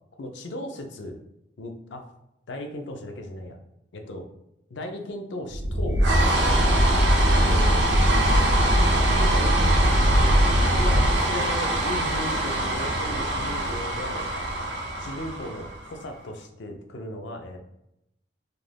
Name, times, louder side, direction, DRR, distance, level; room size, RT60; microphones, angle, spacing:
voice 1, 0.2-1.2 1.6-2.0 2.5-3.6 3.9-4.3 4.7-6.0 7.3-7.8 8.6-10.2 10.7-14.5 15.0-17.6, left 1 dB, 75° left, 4 dB, 0.5 m, -36 dB
sound 1, 5.5-16.0, right 1 dB, 70° right, 0.5 m, -21 dB
2.4 x 2.2 x 3.2 m, 0.82 s
head